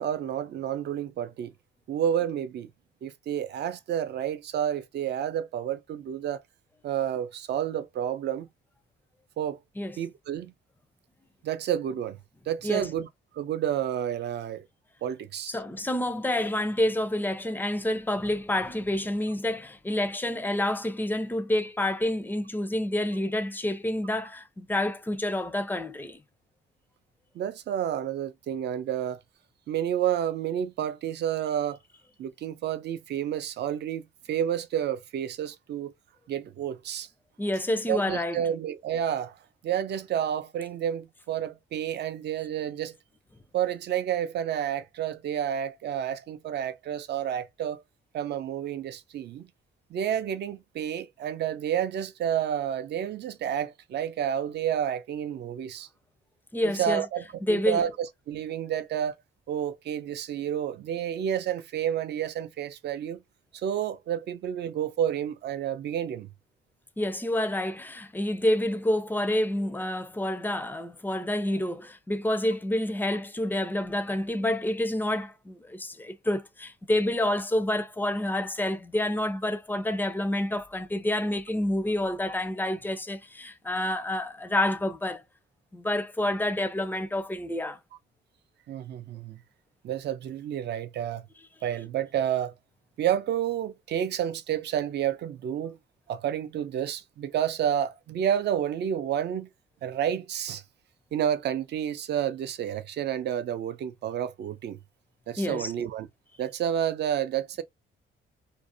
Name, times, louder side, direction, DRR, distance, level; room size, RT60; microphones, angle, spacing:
voice 1, 0.0-1.5 1.9-2.7 3.0-6.4 6.8-8.5 9.4-9.6 10.0-10.5 11.4-12.2 12.5-13.1 13.3-14.6 15.0-15.6 27.3-29.2 29.7-31.8 32.2-34.0 34.3-35.9 36.3-37.1 37.9-39.4 39.6-43.0 43.5-47.8 48.1-49.5 49.9-55.9 56.6-59.1 59.5-63.2 63.5-66.3 88.7-89.4 89.8-91.3 91.6-92.5 93.0-95.8 96.1-99.5 99.8-100.6 101.1-104.8 105.3-106.1 106.4-107.6, right 10 dB, 60° right, 0.5 m, -30 dB
voice 2, 15.5-26.2 37.4-38.4 56.5-57.0 57.4-57.8 67.0-85.2 85.7-87.8 105.4-105.7, left 1 dB, 10° left, 0.4 m, -28 dB
2.5 x 2.1 x 2.5 m
cardioid pair, 90°, 20 cm